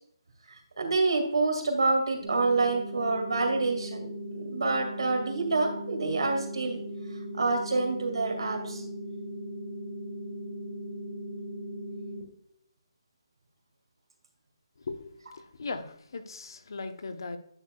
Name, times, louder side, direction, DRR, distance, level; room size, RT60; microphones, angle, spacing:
voice 1, 0.5-4.0 4.3-6.8 7.3-8.8, right 3 dB, 75° right, 4 dB, 2.0 m, -27 dB
sound 1, 2.2-12.2, equal, 30° right, 2.1 m, -38 dB
voice 2, 14.8-17.4, left 3 dB, 55° left, 9 dB, 0.9 m, -38 dB
9.9 x 6.4 x 2.3 m, 0.69 s
hypercardioid pair, 170°, 3 cm